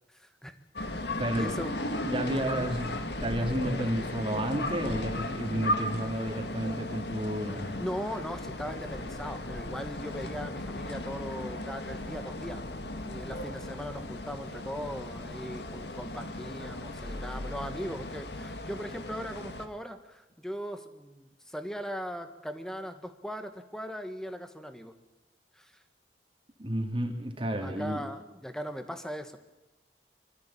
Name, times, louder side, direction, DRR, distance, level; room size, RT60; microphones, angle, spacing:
voice 1, 0.1-0.5 0.9-1.0 1.3-1.7 2.5-2.7 7.8-12.6 13.1-24.9 25.5-25.8 27.6-29.4, equal, 5° left, 8 dB, 1.6 m, -39 dB
sound 1, 0.8-19.7, left 1 dB, 65° left, 1.9 m, -36 dB
voice 2, 1.2-1.5 2.0-2.9 3.2-7.8 26.6-28.0, right 1 dB, 30° right, 2 dB, 2.5 m, -31 dB
25.0 x 14.5 x 8.6 m, 1.0 s
head